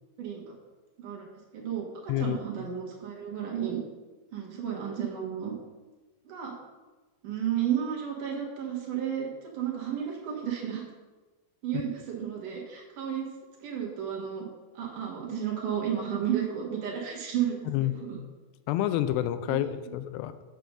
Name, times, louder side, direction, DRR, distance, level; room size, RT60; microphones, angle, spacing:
voice 1, 0.2-0.5 1.0-1.2 1.5-3.8 4.3-5.5 6.3-6.5 7.2-10.8 11.6-13.3 13.6-14.4 14.7-17.7 18.0-18.2 19.5-19.6, right 9 dB, 60° right, -2 dB, 2.7 m, -32 dB
voice 2, 18.7-20.3, left 13 dB, 90° left, 12 dB, 2.7 m, -28 dB
7.9 x 6.8 x 6.2 m, 1.2 s
omnidirectional pair, 4.7 m